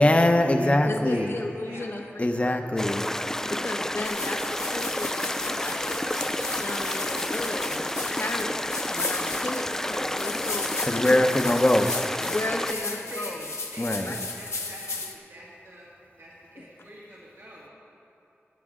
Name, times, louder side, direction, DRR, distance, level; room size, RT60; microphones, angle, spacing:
voice 1, 0.0-1.3 2.2-3.1 10.8-11.9 13.8-14.1, left 1 dB, 25° left, 5 dB, 0.8 m, -22 dB
voice 2, 0.8-2.6 3.4-6.0 6.5-11.3 12.2-13.5 14.0-14.2 16.6-16.7, left 2 dB, 60° left, 2 dB, 1.0 m, -35 dB
sound 1, 2.8-12.7, left 1 dB, 10° left, 0.3 m, -30 dB
sound 2, 4.0-15.1, left 3 dB, 90° left, 0.9 m, -35 dB
voice 3, 12.5-15.9 16.2-17.7, right 1 dB, 75° right, -7 dB, 2.0 m, -43 dB
19.5 x 8.3 x 3.7 m, 2.9 s
wide cardioid pair, 60°, 5 cm